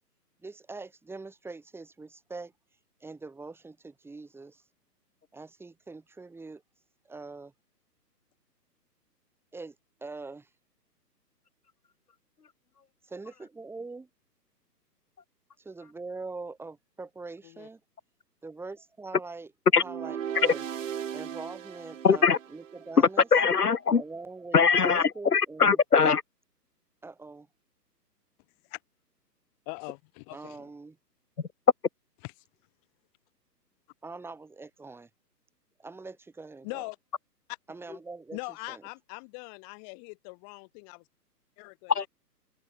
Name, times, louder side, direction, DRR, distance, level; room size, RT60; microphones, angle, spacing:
voice 1, 0.4-2.5 3.0-4.6 5.3-6.6 7.1-7.5 9.5-9.7 10.0-10.5 13.0-14.1 15.6-17.8 18.4-20.6 21.1-23.3 24.0-25.8 27.0-27.5 30.3-31.0 34.0-35.1 35.8-36.9 37.7-38.4 38.7-38.8, right 3 dB, 5° right, 6.6 m, -43 dB
sound 1, 19.8-23.1, right 9 dB, 50° right, 7.1 m, -37 dB
voice 2, 22.0-22.4 23.0-24.0 24.5-26.2 41.9-42.1, left 5 dB, 65° left, 4.0 m, -21 dB
voice 3, 29.7-30.6 32.2-32.3 36.6-37.0 38.3-41.0 41.6-42.1, left 40 dB or more, 25° left, 6.3 m, -41 dB
open air
figure-of-eight pair, 130°, 49 cm